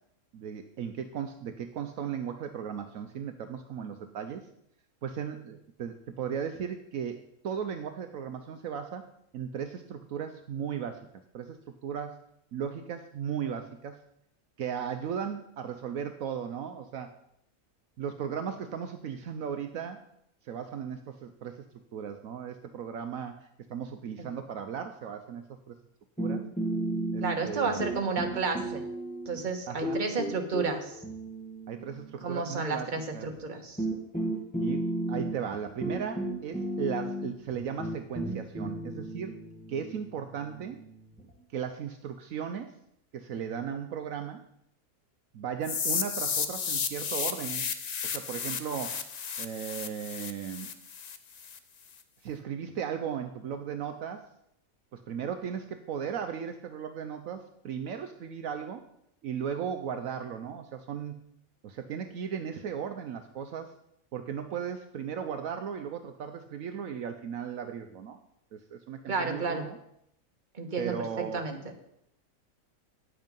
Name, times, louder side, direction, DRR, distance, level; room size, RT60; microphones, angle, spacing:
voice 1, 0.3-4.4 5.0-9.0 9.3-11.0 11.3-12.2 12.5-14.0 14.6-17.1 18.0-20.0 20.4-21.6 21.9-25.7 26.2-26.4 27.1-27.8 29.7-30.1 31.7-33.3 34.6-39.3 39.7-40.8 41.5-42.7 43.1-44.4 45.3-47.7 48.0-49.0 49.4-50.7 52.2-54.2 54.9-58.8 59.2-61.3 61.6-63.7 64.1-68.2 68.5-69.8 70.8-71.5, right 7 dB, 70° right, 7 dB, 1.1 m, -36 dB
sound 1, 26.2-27.5 27.8-29.4 29.8-32.3 33.2-33.3 33.8-41.3, right 1 dB, 5° left, 1.6 m, -34 dB
voice 2, 27.2-28.8 29.3-31.0 32.2-33.8 69.1-69.6 70.5-71.6, right 4 dB, 35° right, 3 dB, 1.4 m, -31 dB
sound 2, 45.6-51.6, left 6 dB, 60° left, 0.4 m, -33 dB
9.8 x 7.8 x 5.3 m, 0.75 s
omnidirectional pair, 1.5 m